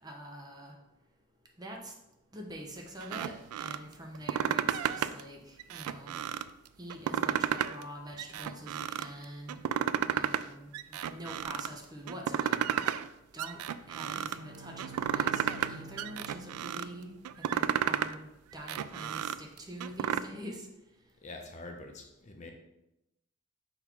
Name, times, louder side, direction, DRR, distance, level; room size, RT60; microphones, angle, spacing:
voice 1, 0.0-0.7 1.6-1.9 2.3-6.2 6.8-9.6 10.1-12.8 13.3-13.6 13.9-17.1 17.5-20.7, equal, 20° right, 1 dB, 0.7 m, -45 dB
sound 1, 3.0-3.8 4.1-5.2 5.6-6.5 6.9-7.9 8.2-9.1 9.5-10.4 10.7-11.7 12.1-13.1 13.4-14.4 14.8-15.7 16.0-16.9 17.2-18.1 18.5-20.2, right 9 dB, 90° right, 0.3 m, -32 dB
Bowed string instrument, 14.0-17.6, right 4 dB, 65° right, 0.9 m, -49 dB
voice 2, 21.2-22.5, left 2 dB, 35° left, 3 dB, 0.6 m, -45 dB
5.3 x 3.9 x 4.6 m, 0.89 s
head